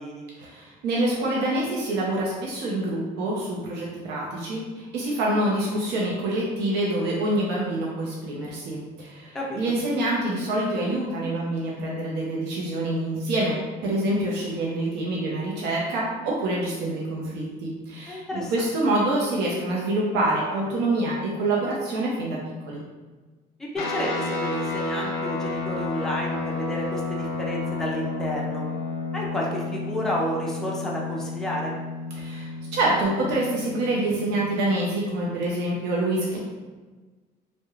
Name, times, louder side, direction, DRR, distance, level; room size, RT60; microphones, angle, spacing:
voice 1, 0.4-13.6 13.8-22.4 22.7-22.8 32.1-36.4, right 1 dB, 85° right, -4 dB, 0.6 m, -26 dB
voice 2, 18.1-18.5 23.6-28.7 29.1-31.7, equal, 5° left, -3 dB, 0.4 m, -31 dB
sound 1, 23.8-35.5, left 3 dB, 65° left, 0.4 m, -32 dB
2.3 x 2.1 x 2.9 m, 1.3 s
cardioid pair, 110°, 17 cm